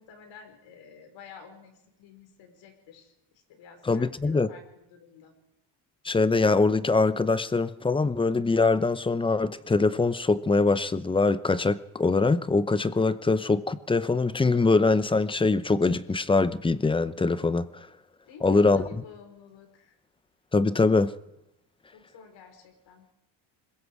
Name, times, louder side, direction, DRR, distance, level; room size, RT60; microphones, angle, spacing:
voice 1, 0.0-5.4 18.2-20.0 21.9-23.1, left 6 dB, 65° left, 5.1 m, -50 dB
voice 2, 3.9-4.5 6.0-17.7 18.4-18.8 20.5-21.2, left 3 dB, 10° left, 0.7 m, -23 dB
25.5 x 21.5 x 4.9 m
cardioid pair, 130°, 48 cm